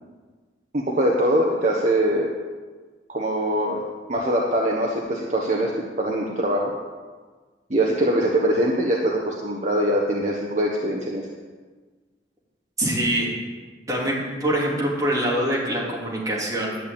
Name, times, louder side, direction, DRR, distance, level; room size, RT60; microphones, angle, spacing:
voice 1, 0.7-2.3 3.1-3.8 4.1-6.7 7.7-11.3, right 1 dB, 45° right, -2 dB, 1.3 m, -22 dB
voice 2, 12.8-13.4 13.9-16.8, right 1 dB, 20° right, -5 dB, 3.3 m, -24 dB
11.5 x 6.9 x 8.8 m, 1.4 s
head